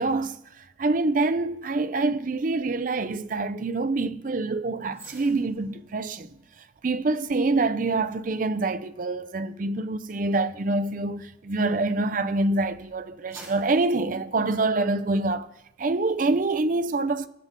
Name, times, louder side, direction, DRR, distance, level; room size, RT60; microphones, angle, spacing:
voice 1, 0.0-6.3 6.8-15.5 15.8-17.3, right 3 dB, 40° right, 0.5 m, -26 dB
sound 1, 4.9-12.3 12.8-15.1 15.5-15.7, right 1 dB, 15° right, 2.6 m, -54 dB
20.0 x 7.7 x 3.7 m
head